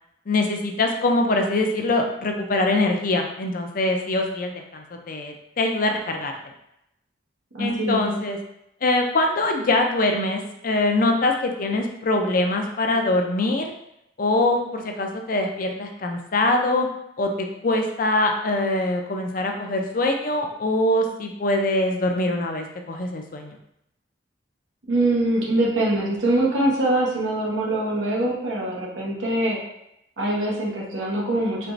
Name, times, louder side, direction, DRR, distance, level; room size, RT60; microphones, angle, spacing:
voice 1, 0.3-6.3 7.6-8.4 8.8-13.7 14.2-16.9 17.2-23.6, left 2 dB, 50° left, 3 dB, 0.5 m, -23 dB
voice 2, 7.5-8.1 24.9-29.6 30.2-31.7, right 1 dB, 85° right, -4 dB, 1.0 m, -23 dB
4.4 x 3.0 x 2.6 m, 0.82 s
head